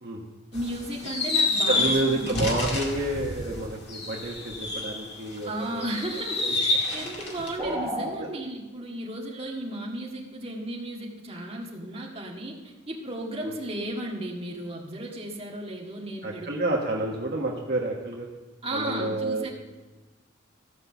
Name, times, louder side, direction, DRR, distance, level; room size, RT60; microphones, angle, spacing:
sound 1, 0.5-5.3 5.8-7.6, left 2 dB, 55° left, 2.0 m, -28 dB
voice 1, 0.5-2.3 5.4-16.5 18.6-19.5, right 1 dB, 30° right, -2 dB, 1.8 m, -34 dB
voice 2, 1.7-5.9 6.4-6.5 8.0-8.1 13.4-13.5 16.2-18.3 18.7-19.5, right 2 dB, 50° right, -2 dB, 1.2 m, -29 dB
sound 2, 7.6-8.1, equal, 10° right, 4.3 m, -30 dB
14.5 x 5.8 x 6.9 m, 1.2 s
head